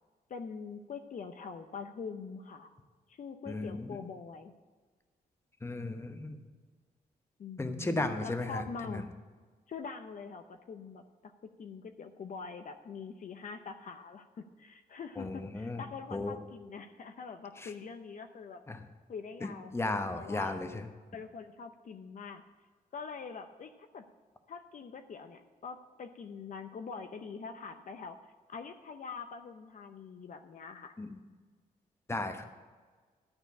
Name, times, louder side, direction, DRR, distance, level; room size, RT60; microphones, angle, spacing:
voice 1, 0.3-2.7 3.1-4.5 7.4-9.1 9.7-11.3 11.6-14.3 14.6-18.6 19.1-20.6 21.1-22.4 22.9-24.1 24.5-28.2 28.5-30.9, left 5 dB, 55° left, 7 dB, 0.7 m, -44 dB
voice 2, 3.5-3.9 5.6-6.4 7.6-9.0 15.2-15.8 16.1-16.4 17.6-17.7 18.7-18.8 19.7-20.8 31.0-31.2 32.1-32.4, left 2 dB, 15° left, 7 dB, 0.9 m, -35 dB
11.5 x 4.4 x 8.2 m, 1.4 s
cardioid pair, 95°, 16 cm